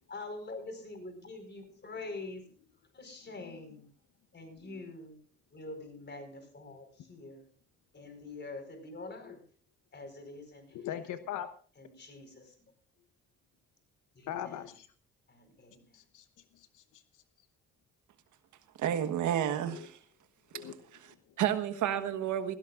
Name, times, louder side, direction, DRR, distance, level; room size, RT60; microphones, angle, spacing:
voice 1, 0.1-2.4 2.9-3.9 4.3-5.2 5.5-7.5 7.9-9.4 9.9-11.2 11.8-12.5 14.1-14.7 15.3-16.0, left 2 dB, 35° left, 6 dB, 4.9 m, -45 dB
voice 2, 10.7-11.5 14.3-14.9 15.9-16.3 16.5-17.0 19.7-19.9 20.5-20.7 21.1-21.2, left 10 dB, 80° left, 10 dB, 1.0 m, -41 dB
voice 3, 18.8-20.0 20.5-20.7 21.0-22.6, right 10 dB, 75° right, 9 dB, 1.4 m, -31 dB
18.5 x 16.5 x 2.5 m, 0.42 s
cardioid pair, 90°, 30 cm